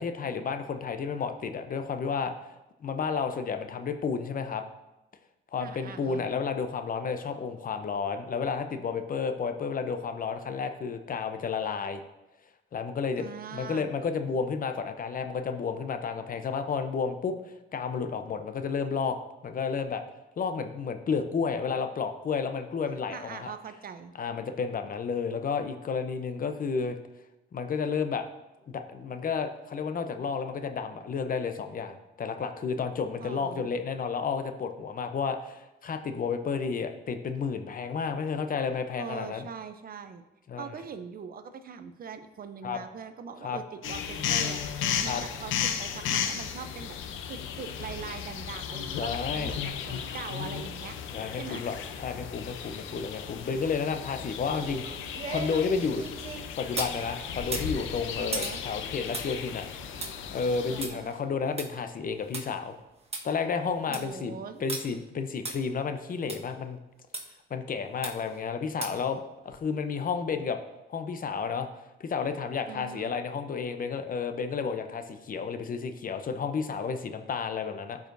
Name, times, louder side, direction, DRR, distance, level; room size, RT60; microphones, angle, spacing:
voice 1, 0.0-2.3 2.8-4.6 5.5-12.0 12.7-13.3 13.5-19.2 19.4-20.0 20.4-23.5 24.2-27.0 27.5-28.2 28.7-39.4 40.5-40.7 42.6-42.8 43.4-43.6 45.1-45.2 49.0-49.5 51.1-56.0 56.6-60.0 60.3-62.7 63.2-66.8 67.5-69.2 69.4-70.6 70.9-71.7 72.0-78.0, left 5 dB, 45° left, 8 dB, 0.7 m, -31 dB
voice 2, 5.6-6.3 13.2-13.9 23.1-24.1 33.2-33.7 39.0-40.3 40.6-44.6 45.0-47.0 47.3-51.0 51.3-51.7 58.2-58.6 60.7-61.1 63.9-64.6 72.7-73.1, right 6 dB, 50° right, 10 dB, 0.6 m, -42 dB
sound 1, 43.8-60.9, left 8 dB, 80° left, 0.7 m, -35 dB
sound 2, 54.5-57.0 57.4-62.4 62.8-62.9 63.1-63.2 63.7-64.1 64.7-64.8 65.5-65.6 66.3-66.4 67.1-67.2 68.0-68.4 68.8-69.1 69.5-69.6, right 3 dB, 30° right, 1.3 m, -38 dB
12.0 x 4.8 x 2.6 m, 0.97 s
cardioid pair, 90°, 20 cm